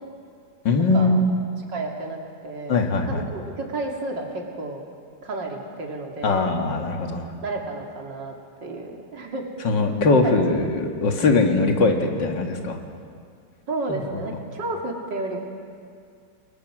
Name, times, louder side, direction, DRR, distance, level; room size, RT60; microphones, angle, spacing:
voice 1, 0.7-1.3 2.7-3.2 6.2-7.3 9.6-12.8, left 3 dB, 75° left, 4 dB, 2.5 m, -21 dB
voice 2, 1.7-4.8 5.2-6.6 7.4-9.5 10.5-10.6 13.7-15.4, right 2 dB, 75° right, 1 dB, 3.2 m, -32 dB
29.0 x 20.5 x 6.2 m, 2.3 s
omnidirectional pair, 2.0 m